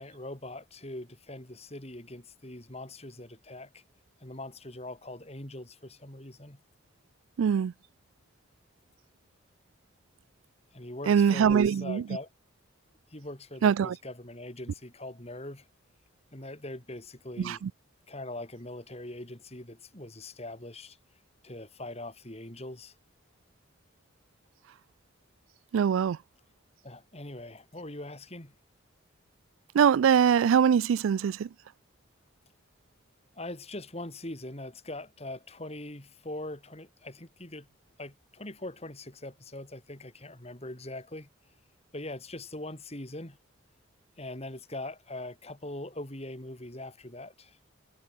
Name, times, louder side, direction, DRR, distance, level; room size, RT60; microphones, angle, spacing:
voice 1, 0.0-3.8 4.2-6.6 10.7-12.3 13.1-15.7 16.3-17.6 18.1-21.0 21.4-22.9 26.8-28.5 33.3-37.7 38.0-41.3 41.9-43.4 44.2-47.6, left 1 dB, 30° left, 3.8 m, -42 dB
voice 2, 7.4-7.7 11.1-12.0 13.6-14.0 17.4-17.7 25.7-26.2 29.7-31.5, right 7 dB, 85° right, 0.3 m, -23 dB
head